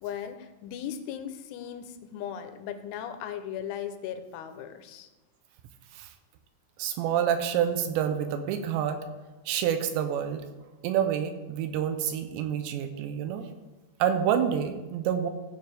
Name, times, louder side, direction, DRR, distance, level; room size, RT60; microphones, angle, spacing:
voice 1, 0.0-5.1, left 9 dB, 85° left, 8 dB, 3.1 m, -37 dB
voice 2, 6.8-9.0 9.5-10.4 10.8-13.5 14.0-15.3, right 9 dB, 85° right, 8 dB, 2.6 m, -28 dB
16.0 x 6.8 x 3.4 m, 1.2 s
omnidirectional pair, 5.6 m